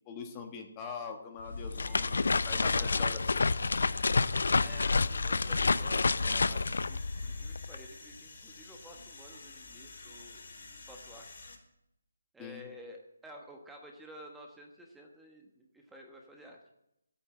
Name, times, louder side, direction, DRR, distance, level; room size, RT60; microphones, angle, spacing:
voice 1, 0.1-3.7 12.4-12.6, left 6 dB, 15° left, 4 dB, 1.3 m, -43 dB
sound 1, 1.4-7.8, left 4 dB, 70° left, 0.6 m, -29 dB
sound 2, 1.7-11.6, left 3 dB, 45° left, 4.1 m, -51 dB
voice 2, 1.8-3.1 4.5-10.5 10.9-11.3 12.3-16.6, equal, 5° right, 1 dB, 1.3 m, -51 dB
13.0 x 8.8 x 7.8 m, 0.83 s
hypercardioid pair, 165°, 0 cm